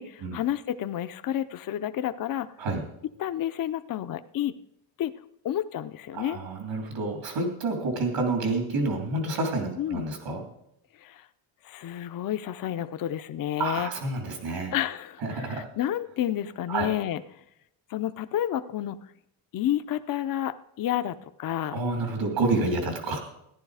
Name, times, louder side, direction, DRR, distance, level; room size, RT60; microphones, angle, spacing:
voice 1, 0.0-2.5 3.2-4.5 5.0-5.1 5.4-6.4 9.8-10.0 11.0-11.3 11.6-13.9 14.7-17.2 17.9-19.0 19.5-21.8, left 11 dB, 45° left, 12 dB, 0.6 m, -30 dB
voice 2, 6.1-10.4 13.6-14.7 15.2-15.7 16.7-16.9 21.7-23.2, right 2 dB, 70° right, 3 dB, 3.1 m, -28 dB
15.0 x 10.5 x 4.8 m, 0.79 s
cardioid pair, 135°, 45 cm